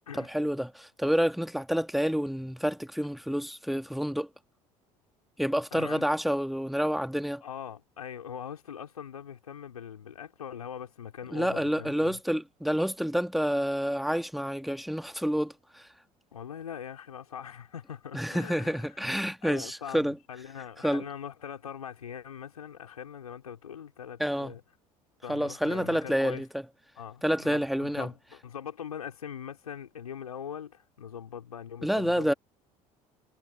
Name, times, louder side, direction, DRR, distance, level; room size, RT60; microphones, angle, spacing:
voice 1, 0.1-4.3 5.4-7.4 11.3-15.9 18.1-20.2 20.8-21.0 24.2-24.5 25.3-26.5 27.2-28.1 31.8-32.3, equal, ahead, 2.0 m, -28 dB
voice 2, 5.7-6.1 7.4-12.2 16.3-19.0 19.4-24.6 25.2-26.4 27.0-32.4, left 8 dB, 80° left, 4.3 m, -42 dB
figure-of-eight pair, 60°, 19 cm